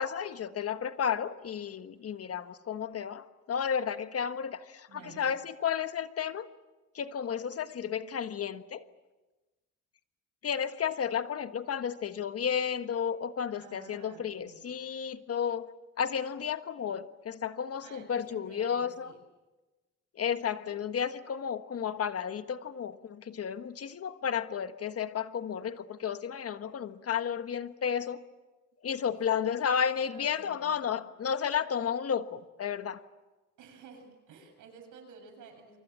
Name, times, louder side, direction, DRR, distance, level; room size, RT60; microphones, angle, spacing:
voice 1, 0.0-6.5 6.9-8.8 10.4-15.7 16.0-19.1 20.1-28.2 28.8-33.0, left 7 dB, 50° left, 10 dB, 1.4 m, -32 dB
voice 2, 4.9-5.3 13.6-14.6 17.8-19.2 29.3-29.5 30.1-31.0 33.6-35.8, right 4 dB, 80° right, 4 dB, 7.5 m, -52 dB
29.0 x 24.5 x 7.5 m, 1.2 s
cardioid pair, 90°, 30 cm